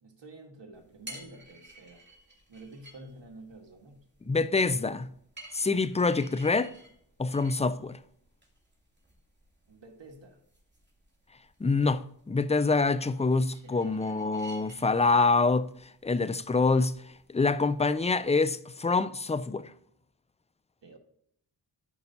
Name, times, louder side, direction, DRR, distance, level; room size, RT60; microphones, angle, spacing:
voice 1, 0.0-2.0 2.5-4.0 9.7-10.4 13.4-14.2 20.8-21.0, right 2 dB, 65° right, 1.7 m, -50 dB
sound 1, 0.7-18.2, right 1 dB, 20° right, 2.9 m, -54 dB
voice 2, 4.3-5.1 5.5-6.7 7.2-8.0 11.6-15.7 16.0-16.9 17.3-19.7, left 3 dB, 15° left, 0.4 m, -26 dB
13.0 x 5.4 x 2.8 m
cardioid pair, 45°, 46 cm